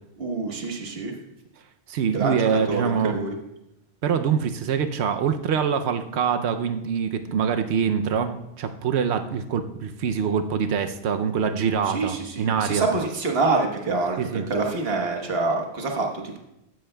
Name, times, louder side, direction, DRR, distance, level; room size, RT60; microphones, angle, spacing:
voice 1, 0.2-1.1 2.1-3.3 11.9-16.4, right 3 dB, 65° right, 1 dB, 1.5 m, -26 dB
voice 2, 1.9-3.2 4.0-12.9 14.2-14.4, right 7 dB, 85° right, 7 dB, 0.9 m, -24 dB
15.0 x 10.5 x 2.2 m, 0.86 s
omnidirectional pair, 1.1 m